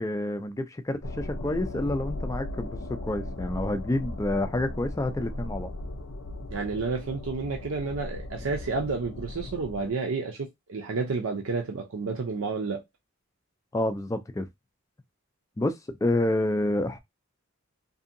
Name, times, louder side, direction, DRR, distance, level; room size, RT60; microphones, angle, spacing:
voice 1, 0.0-5.7 13.7-14.5 15.6-15.7 16.0-17.0, left 1 dB, 15° left, 0.3 m, -28 dB
sound 1, 1.0-9.9, left 1 dB, 75° left, 0.5 m, -37 dB
voice 2, 6.5-12.8, right 4 dB, 85° right, 0.6 m, -30 dB
2.7 x 2.6 x 2.6 m
head